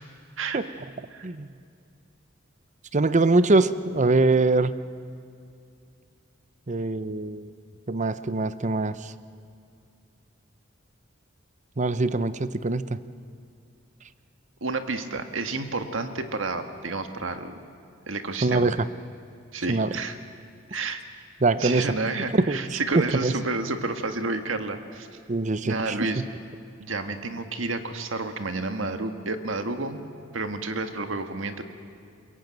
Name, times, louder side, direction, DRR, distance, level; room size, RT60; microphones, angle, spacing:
voice 1, 2.9-4.8 6.7-7.5 7.9-9.1 11.8-13.0 18.4-18.9 19.7-19.9 21.4-21.9 22.3-23.3 25.3-26.1, right 3 dB, 40° right, 14 dB, 0.7 m, -23 dB
voice 2, 14.6-17.6 18.1-18.7 19.5-20.2 20.7-21.0 21.6-25.1 25.6-26.2 26.8-30.0 30.3-31.6, right 3 dB, 80° right, 7 dB, 1.7 m, -30 dB
22.5 x 22.5 x 9.1 m, 2.4 s
head